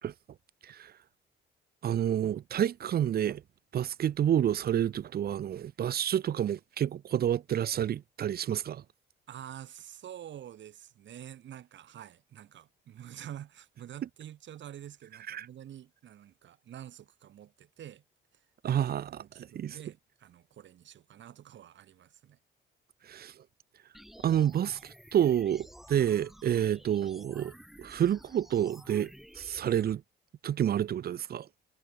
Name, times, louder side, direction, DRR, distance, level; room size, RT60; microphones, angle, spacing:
voice 1, 1.8-3.4 3.7-8.8 15.3-15.5 18.6-19.1 19.5-19.8 23.1-23.3 24.2-27.5 27.8-30.0 30.4-31.5, right 10 dB, 50° right, 0.7 m, -29 dB
voice 2, 9.3-18.0 18.6-22.4, right 11 dB, 70° right, 3.1 m, -47 dB
sound 1, 23.9-29.9, equal, ahead, 5.4 m, -53 dB
cardioid pair, 90°, 20 cm